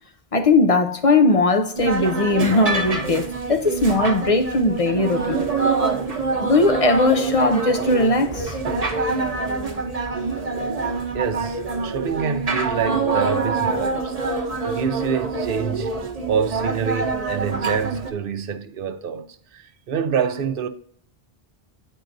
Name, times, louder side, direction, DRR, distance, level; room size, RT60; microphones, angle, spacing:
voice 1, 0.3-5.4 6.4-8.6, left 2 dB, 40° left, 0.6 m, -19 dB
sound 1, 1.8-18.1, right 4 dB, 40° right, 1.0 m, -25 dB
voice 2, 11.1-14.2 14.6-16.0 16.3-20.7, right 7 dB, 65° right, 0.8 m, -26 dB
10.5 x 4.6 x 2.6 m
omnidirectional pair, 1.0 m